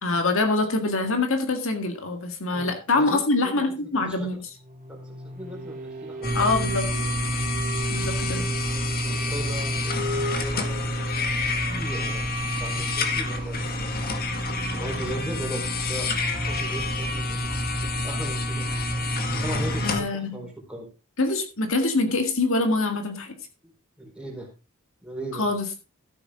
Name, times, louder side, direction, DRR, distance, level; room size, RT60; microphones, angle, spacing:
voice 1, 0.0-4.5 6.3-6.9 7.9-8.5 19.8-20.4 21.2-23.3 25.4-25.7, left 3 dB, 65° left, 5 dB, 1.9 m, -24 dB
voice 2, 2.5-3.7 4.0-4.4 4.9-6.4 9.1-9.9 10.5-10.8 11.3-13.6 14.7-18.7 19.3-20.9 23.6-23.7 24.0-24.5 25.0-25.5, right 1 dB, 5° right, -1 dB, 4.4 m, -38 dB
sound 1, 4.5-19.2, equal, 35° right, 2.6 m, -40 dB
sound 2, 6.2-20.0, left 1 dB, 45° left, 1.8 m, -27 dB
14.0 x 8.1 x 3.7 m, 0.30 s
head